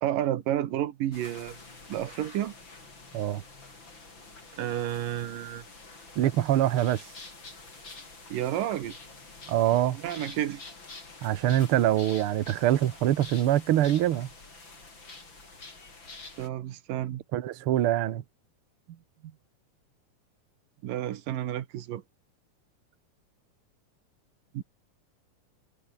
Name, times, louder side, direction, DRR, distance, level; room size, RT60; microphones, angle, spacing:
voice 1, 0.0-1.6 1.9-2.5 4.6-5.6 8.3-9.0 9.9-10.6 16.4-17.2 18.9-19.0 20.8-22.0 24.5-24.6, right 12 dB, 85° right, 3.0 m, -31 dB
sound 1, 1.1-16.5, left 3 dB, 35° left, 6.0 m, -47 dB
voice 2, 6.2-7.0 9.5-10.0 11.2-14.3 17.3-18.2, right 12 dB, 65° right, 1.3 m, -24 dB
omnidirectional pair, 3.8 m